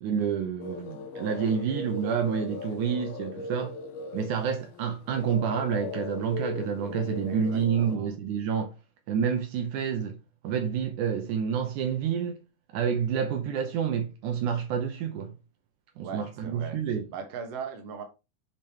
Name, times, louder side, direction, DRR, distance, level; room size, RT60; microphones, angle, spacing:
voice 1, 0.0-3.8 4.1-8.7 9.1-10.2 10.4-12.4 12.7-15.3 16.0-17.0, right 7 dB, 75° right, 2.3 m, -28 dB
sound 1, 0.6-8.0, left 4 dB, 70° left, 1.6 m, -38 dB
voice 2, 7.2-8.1 16.0-16.8 17.1-18.0, right 6 dB, 55° right, 2.3 m, -39 dB
8.7 x 5.4 x 3.0 m
omnidirectional pair, 3.6 m